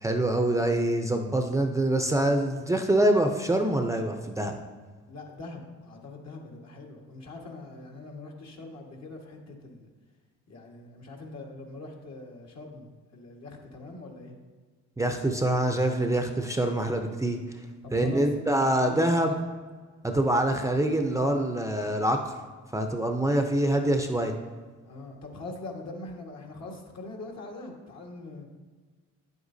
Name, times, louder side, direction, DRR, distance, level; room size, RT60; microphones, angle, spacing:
voice 1, 0.0-4.6 15.0-17.4 17.9-19.4 20.0-22.4 22.7-24.3, right 1 dB, 10° right, 4 dB, 0.6 m, -25 dB
voice 2, 5.1-9.9 10.5-14.3 17.8-19.5 24.8-28.4, left 2 dB, 60° left, 0 dB, 1.6 m, -42 dB
9.4 x 8.0 x 2.7 m, 1.5 s
cardioid pair, 90°, 30 cm